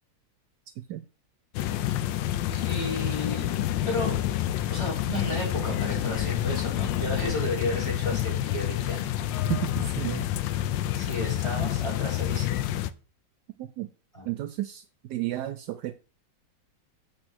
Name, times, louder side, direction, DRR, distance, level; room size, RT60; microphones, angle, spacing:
sound 1, 1.5-12.9, left 12 dB, 90° left, 1.3 m, -28 dB
voice 1, 2.5-4.2 4.7-9.1 10.0-10.4 10.9-12.7 14.1-14.3, left 1 dB, 15° left, 4.5 m, -33 dB
voice 2, 9.5-10.2 13.6-13.9 14.3-15.9, right 14 dB, 75° right, 1.1 m, -32 dB
7.9 x 4.3 x 6.2 m
omnidirectional pair, 2.0 m